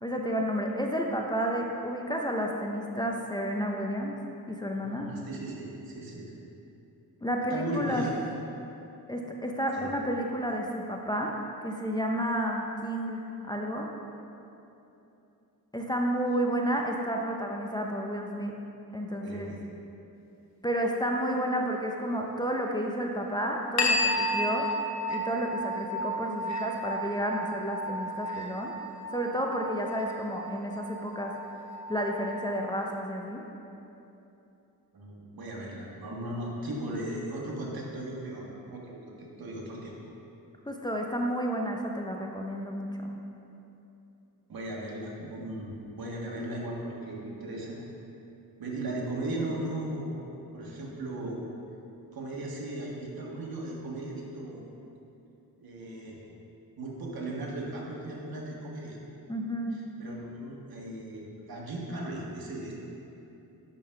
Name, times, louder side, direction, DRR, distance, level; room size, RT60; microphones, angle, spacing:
voice 1, 0.0-4.2 4.5-5.1 7.2-8.1 9.1-13.9 15.7-18.5 18.9-19.5 20.6-24.7 25.1-28.7 29.1-31.3 31.9-33.4 40.7-43.1 59.3-59.8, equal, 10° left, 0 dB, 0.5 m, -31 dB
voice 2, 4.7-6.3 7.5-8.1 9.7-9.9 19.2-19.6 34.9-39.9 44.5-47.8 48.6-50.2 50.5-51.4 52.1-54.6 55.6-56.2 56.8-59.0 59.7-62.7, right 1 dB, 75° right, -3 dB, 1.6 m, -37 dB
sound 1, 23.8-32.8, left 1 dB, 45° left, 0.9 m, -33 dB
10.0 x 3.9 x 5.7 m, 2.9 s
wide cardioid pair, 130°, 37 cm